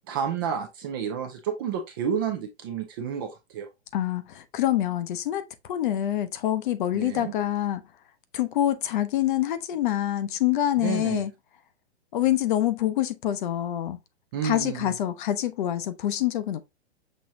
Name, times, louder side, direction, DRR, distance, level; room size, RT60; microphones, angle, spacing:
voice 1, 0.1-3.7 6.9-7.3 10.8-11.2 14.3-14.9, right 7 dB, 20° right, 0.4 m, -30 dB
voice 2, 3.9-7.8 8.3-11.3 12.1-14.0 14.4-16.6, left 12 dB, 45° left, 0.7 m, -26 dB
6.2 x 3.0 x 2.6 m
hypercardioid pair, 150°, 34 cm